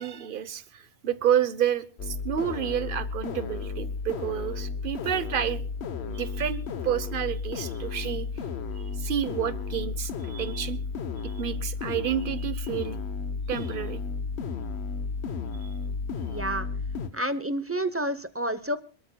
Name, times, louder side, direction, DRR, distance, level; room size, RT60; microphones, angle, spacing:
voice 1, 0.0-5.6 6.0-8.3 8.8-10.8 11.2-13.0 13.5-14.0 15.6-15.7, right 9 dB, 55° right, 14 dB, 1.0 m, -30 dB
sound 1, 2.0-17.1, left 5 dB, 80° left, 1.2 m, -33 dB
voice 2, 16.3-16.7 17.1-18.8, right 1 dB, 15° right, 12 dB, 0.6 m, -29 dB
26.0 x 13.0 x 2.2 m, 0.39 s
omnidirectional pair, 1.1 m